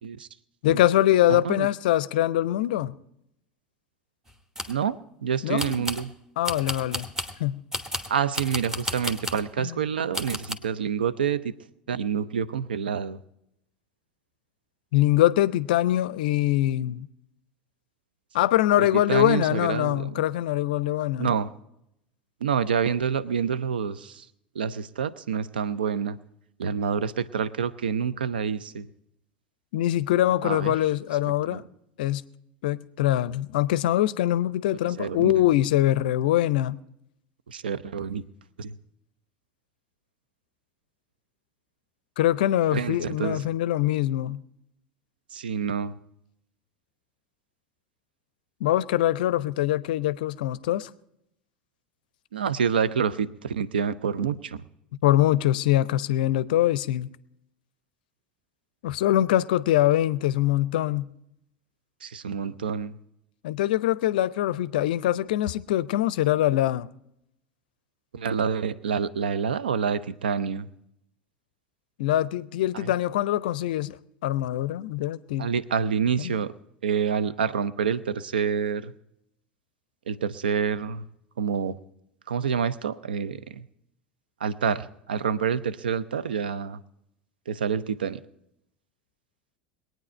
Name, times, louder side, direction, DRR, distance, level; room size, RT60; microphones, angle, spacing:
voice 1, 0.6-3.0 5.4-5.8 6.4-7.1 7.4-7.6 9.6-9.8 14.9-17.1 18.3-21.3 29.7-31.6 32.0-32.2 32.6-36.8 42.2-44.4 48.6-50.9 55.0-57.1 58.8-61.1 63.4-66.9 72.0-74.0 74.2-75.5 76.2-76.4, left 13 dB, 60° left, 0.5 m, -23 dB
voice 2, 1.3-1.7 4.7-5.0 5.2-6.1 8.1-11.5 11.9-13.2 18.8-20.2 21.2-21.5 22.4-24.2 24.5-26.2 26.6-28.9 30.4-30.7 31.5-31.6 35.0-35.3 37.5-38.2 38.6-38.7 42.7-43.4 45.3-46.0 52.3-54.6 62.0-63.0 68.1-70.7 72.7-72.9 75.4-76.5 76.8-78.9 80.1-81.0 81.4-81.8 82.3-83.7 84.4-86.8 87.5-88.2, right 7 dB, 75° right, 0.5 m, -27 dB
sound 1, 4.3-4.8 5.6-6.1 6.4-7.4 7.7-9.5 10.1-10.5, equal, 10° right, 1.1 m, -33 dB
22.0 x 9.2 x 4.3 m
figure-of-eight pair, 75°, 5 cm